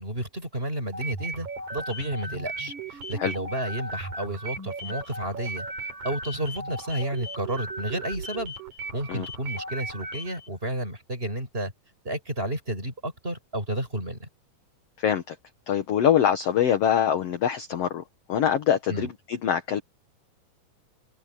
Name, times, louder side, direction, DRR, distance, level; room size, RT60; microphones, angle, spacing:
voice 1, 0.0-5.7 6.0-8.5 8.9-11.7 12.0-14.3 18.9-19.1, right 1 dB, 15° right, 6.2 m, -31 dB
sound 1, 0.9-10.5, right 2 dB, 60° right, 6.1 m, -36 dB
voice 2, 15.0-15.4 15.7-18.0 18.3-19.8, left 9 dB, 60° left, 1.9 m, -24 dB
omnidirectional pair, 4.0 m